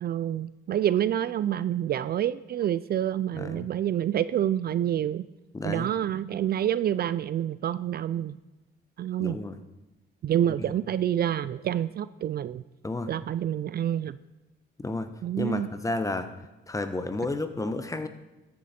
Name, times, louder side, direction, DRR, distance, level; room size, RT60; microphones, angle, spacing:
voice 1, 0.0-5.3 5.6-8.4 9.0-9.4 10.2-12.6 13.1-14.2 15.2-15.7, right 11 dB, 50° right, 15 dB, 0.4 m, -27 dB
voice 2, 3.3-3.7 5.5-5.9 9.2-9.6 12.8-13.1 14.8-15.1 15.4-16.3 16.7-18.1, left 2 dB, 15° left, 10 dB, 1.0 m, -31 dB
13.5 x 8.5 x 4.3 m, 1.0 s
cardioid pair, 90°, 20 cm